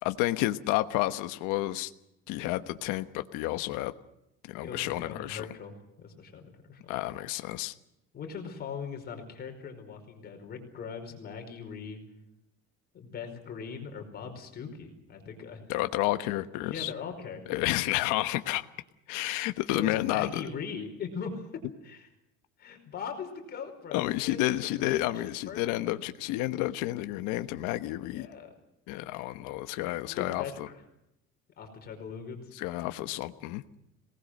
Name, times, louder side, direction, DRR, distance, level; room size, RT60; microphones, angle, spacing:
voice 1, 0.0-1.9 2.3-3.9 4.5-5.5 6.9-7.7 15.7-16.9 17.5-18.6 19.1-20.4 23.9-28.3 28.9-30.7 32.5-33.6, left 16 dB, 85° left, 9 dB, 1.2 m, -30 dB
voice 2, 4.6-7.0 8.1-12.0 12.9-15.6 16.7-17.6 19.7-21.5 21.8-22.1 22.6-26.0 28.1-28.5 30.1-30.8 31.6-32.5, left 6 dB, 35° left, 4 dB, 5.0 m, -40 dB
26.5 x 19.5 x 6.5 m, 0.83 s
cardioid pair, 165°, 30 cm